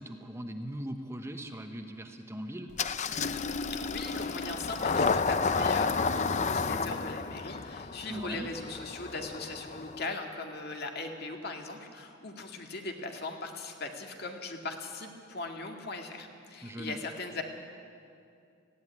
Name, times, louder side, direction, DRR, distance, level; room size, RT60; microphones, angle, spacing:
voice 1, 0.0-2.7 8.1-8.5 16.6-17.0, equal, 15° right, 5 dB, 1.0 m, -39 dB
Engine starting, 2.8-10.1, left 4 dB, 35° left, 0.6 m, -31 dB
voice 2, 3.6-17.4, left 3 dB, 55° left, 3 dB, 2.0 m, -39 dB
18.5 x 15.5 x 9.8 m, 2.4 s
head